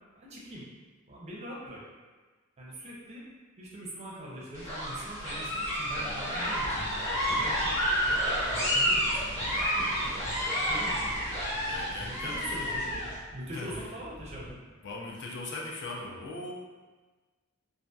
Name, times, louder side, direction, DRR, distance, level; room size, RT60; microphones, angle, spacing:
voice 1, 0.2-0.6 1.1-1.8 2.6-3.2 3.6-8.2 8.5-10.2 10.6-11.4 12.0-13.0 13.3-14.6, equal, 30° right, -4 dB, 0.5 m, -43 dB
sound 1, 4.5-13.1, equal, 30° left, 1.2 m, -30 dB
sound 2, 6.6-14.5, equal, 90° left, 1.3 m, -47 dB
voice 2, 11.5-12.7 13.5-13.7 14.8-16.5, left 2 dB, 55° left, -2 dB, 0.4 m, -39 dB
2.6 x 2.3 x 2.2 m, 1.3 s
head